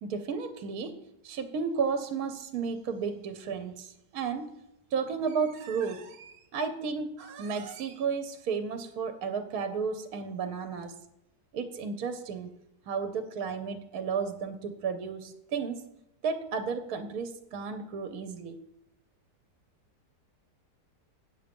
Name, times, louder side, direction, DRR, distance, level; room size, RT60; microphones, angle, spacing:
voice 1, 0.0-1.0 1.2-4.5 4.9-10.9 11.5-12.5 12.9-15.9 16.2-18.6, right 5 dB, 65° right, 9 dB, 1.1 m, -33 dB
9.1 x 7.1 x 5.2 m, 0.83 s
omnidirectional pair, 1.8 m